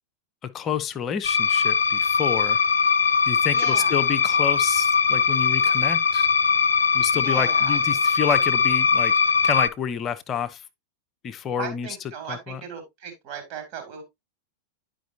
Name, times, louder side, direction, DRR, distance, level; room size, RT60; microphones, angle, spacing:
voice 1, 0.4-2.6 3.3-6.3 6.9-9.1 9.4-10.6 11.2-11.9 12.3-12.6, left 8 dB, 30° left, 0.7 m, -29 dB
sound 1, 1.2-9.7, left 5 dB, 75° left, 0.5 m, -21 dB
voice 2, 3.5-4.1 7.1-8.0 11.6-14.0, right 7 dB, 40° right, 2.9 m, -37 dB
10.5 x 5.1 x 2.7 m
figure-of-eight pair, 90°, 0 cm